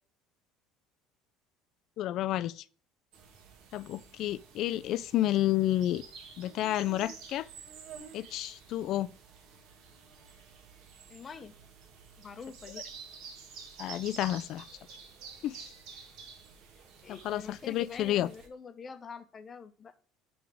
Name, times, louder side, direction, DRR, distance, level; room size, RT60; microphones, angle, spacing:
voice 1, 2.0-2.6 3.7-6.0 6.4-7.5 8.1-9.1 13.8-14.6 15.4-15.6 17.1-18.3, left 13 dB, 50° left, 0.4 m, -30 dB
sound 1, 3.1-18.5, right 6 dB, 60° right, 1.7 m, -50 dB
voice 2, 11.1-11.5 12.2-12.8 17.0-19.9, left 5 dB, 25° left, 0.8 m, -45 dB
10.0 x 3.5 x 3.4 m
cardioid pair, 145°, 0 cm